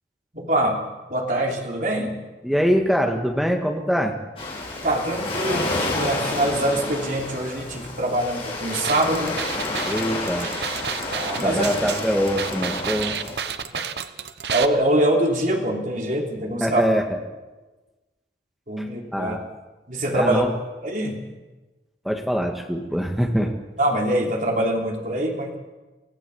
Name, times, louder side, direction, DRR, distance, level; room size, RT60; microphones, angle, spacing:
voice 1, 0.3-0.8 1.1-2.2 4.8-9.4 11.1-11.7 13.7-13.8 14.5-16.8 18.7-19.4 19.9-20.5 20.8-21.2 23.8-25.6, right 1 dB, 45° right, 0 dB, 3.4 m, -24 dB
voice 2, 2.4-4.2 9.8-10.6 11.4-13.2 16.6-17.2 18.8-18.9 19.1-19.4 20.1-20.5 22.0-23.6, equal, ahead, 2 dB, 1.9 m, -23 dB
Waves surf, 4.4-13.5, left 2 dB, 30° left, 5.3 m, -30 dB
sound 1, 8.7-14.7, right 7 dB, 70° right, 1.0 m, -30 dB
25.5 x 15.5 x 7.2 m, 1.2 s
head